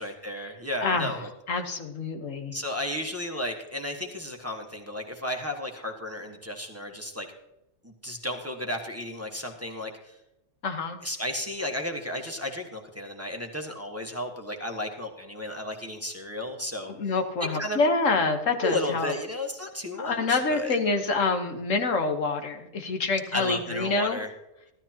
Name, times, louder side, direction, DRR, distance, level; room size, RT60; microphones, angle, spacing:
voice 1, 0.0-1.3 2.5-7.3 7.8-10.2 11.0-16.9 17.6-17.8 18.6-20.8 23.3-24.3, left 1 dB, 10° right, 2 dB, 1.3 m, -33 dB
voice 2, 0.8-1.2 1.5-2.5 10.6-11.0 17.0-19.1 20.0-24.2, left 3 dB, 90° left, 5 dB, 1.6 m, -26 dB
15.0 x 12.5 x 2.9 m, 0.92 s
omnidirectional pair, 1.3 m